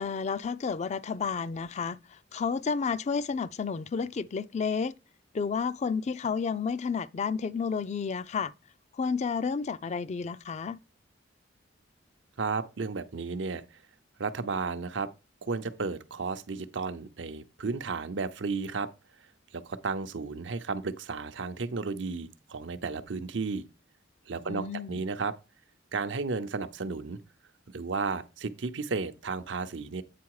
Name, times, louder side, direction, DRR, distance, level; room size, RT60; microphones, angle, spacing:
voice 1, 0.0-4.9 5.3-8.5 8.9-10.8 24.5-25.0, left 5 dB, 40° left, 0.4 m, -31 dB
voice 2, 12.4-13.6 14.2-15.1 15.4-18.9 19.5-23.6 24.3-25.3 25.9-27.2 27.7-30.0, right 4 dB, 85° right, 0.7 m, -33 dB
8.5 x 3.8 x 4.7 m
head